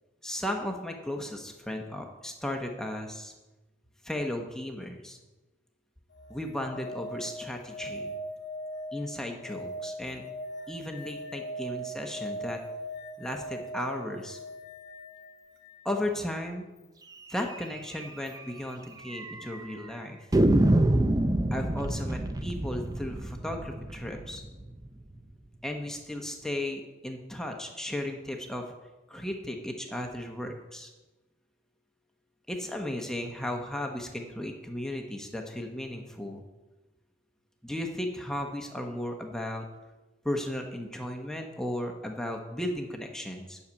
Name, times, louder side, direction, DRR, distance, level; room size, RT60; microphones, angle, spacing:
voice 1, 0.2-3.3 4.0-5.2 6.3-8.1 8.9-10.2 10.7-12.6 13.2-14.4 15.8-16.7 17.3-20.3 21.5-24.4 25.6-28.7 29.1-30.9 32.5-36.4 37.6-39.6 40.2-43.6, left 1 dB, 5° left, 2 dB, 1.0 m, -35 dB
sound 1, 6.1-15.9 18.2-18.3, right 1 dB, 65° left, 1.1 m, -40 dB
sound 2, 17.5-17.7 18.0-18.1 18.4-18.5 19.1-19.6 20.3-25.1, right 1 dB, 20° right, 0.5 m, -26 dB
10.5 x 6.6 x 8.4 m, 1.1 s
head